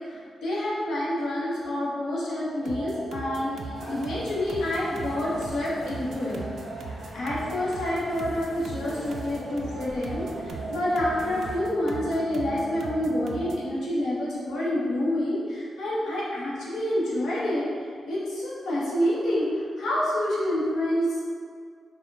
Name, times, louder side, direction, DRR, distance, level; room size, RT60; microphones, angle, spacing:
voice 1, 0.1-6.4 7.1-17.6 18.1-21.2, left 1 dB, 80° left, -7 dB, 1.0 m, -28 dB
sound 1, 2.7-13.7, right 3 dB, 65° right, 0.3 m, -37 dB
sound 2, 3.7-11.6, equal, 30° left, 1.2 m, -45 dB
4.3 x 2.2 x 3.5 m, 2.1 s
wide cardioid pair, 170°, 0 cm